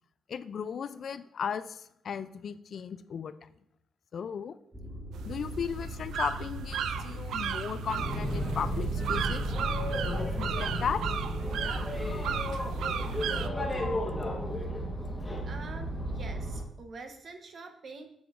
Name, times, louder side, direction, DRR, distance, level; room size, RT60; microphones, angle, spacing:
voice 1, 0.3-3.3 4.1-4.6 5.3-9.5 10.0-11.0, left 7 dB, 55° left, 13 dB, 0.4 m, -36 dB
sound 1, 4.7-12.9, left 1 dB, 5° right, 1.7 m, -42 dB
sound 2, 5.1-13.5, right 8 dB, 85° right, 0.3 m, -36 dB
Boat Water vehicle, 7.8-16.7, equal, 20° left, 1.2 m, -33 dB
voice 2, 15.4-18.1, right 4 dB, 45° right, 6 dB, 0.9 m, -45 dB
7.6 x 7.1 x 2.5 m, 0.76 s
cardioid pair, 125°, 0 cm